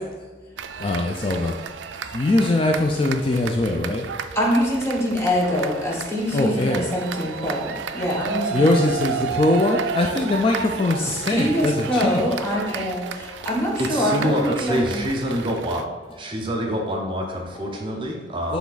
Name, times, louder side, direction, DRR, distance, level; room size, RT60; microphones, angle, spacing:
sound 1, 0.6-15.8, right 6 dB, 90° right, 0.3 m, -32 dB
voice 1, 0.8-1.5 2.1-4.0 6.3-6.9 8.5-11.0 11.3-12.3 18.5-18.6, left 2 dB, 30° left, 0.4 m, -21 dB
voice 2, 4.3-8.7 11.0-15.1, equal, 15° left, 1.1 m, -24 dB
voice 3, 13.8-15.9 16.2-18.6, equal, 30° right, 0.7 m, -26 dB
7.1 x 3.4 x 4.0 m
head